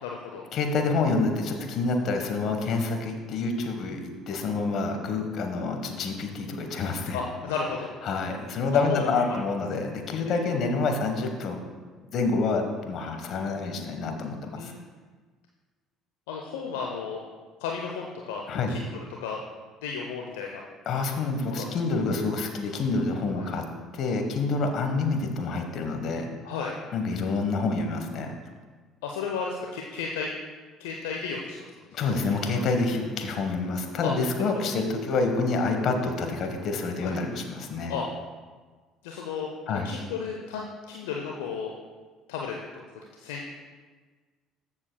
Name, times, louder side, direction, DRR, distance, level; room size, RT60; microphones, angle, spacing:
voice 1, 0.0-0.5 7.1-7.9 8.9-9.2 10.3-10.5 14.6-14.8 16.3-17.2 17.6-19.4 19.8-20.6 21.5-21.8 23.3-23.5 26.4-26.8 29.0-30.3 30.8-31.6 32.5-32.6 34.0-34.1 34.4-34.5 37.0-37.2 37.9-38.1 39.0-41.7 42.3-42.8 43.2-43.5, left 5 dB, 75° left, 0 dB, 0.6 m, -34 dB
voice 2, 0.5-7.2 8.0-11.6 12.1-14.7 18.5-18.8 20.9-23.6 23.9-26.3 26.9-28.3 31.9-38.0 39.7-39.9, left 3 dB, 55° left, 4 dB, 1.2 m, -27 dB
14.0 x 7.1 x 2.3 m, 1.4 s
hypercardioid pair, 60°, 0 cm